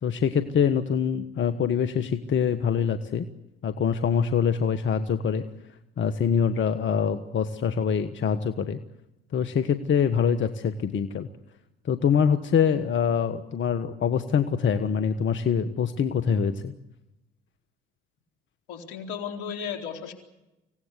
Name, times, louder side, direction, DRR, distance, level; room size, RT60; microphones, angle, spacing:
voice 1, 0.0-3.3 3.6-5.4 6.0-8.8 9.3-11.3 11.8-16.7, left 7 dB, 40° left, 10 dB, 1.4 m, -24 dB
voice 2, 18.7-20.1, left 7 dB, 65° left, 4 dB, 4.1 m, -34 dB
26.0 x 17.5 x 8.3 m, 0.95 s
hypercardioid pair, 60°, 29 cm